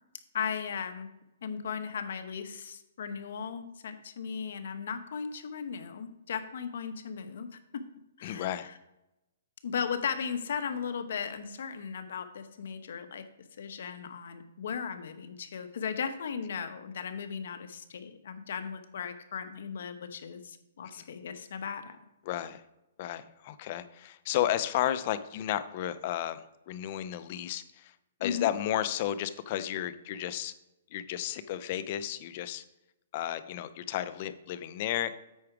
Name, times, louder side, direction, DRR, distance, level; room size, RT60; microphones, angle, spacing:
voice 1, 0.3-1.1 1.4-7.5 8.2-8.7 9.6-13.2 13.6-22.0 28.2-28.5, left 6 dB, 65° left, 9 dB, 0.9 m, -36 dB
voice 2, 8.2-8.7 20.9-21.1 22.2-22.6 23.0-28.0 28.2-30.5 30.9-32.6 33.1-35.2, left 12 dB, 40° left, 13 dB, 0.5 m, -33 dB
8.5 x 4.8 x 4.7 m, 0.92 s
hypercardioid pair, 155°, 0 cm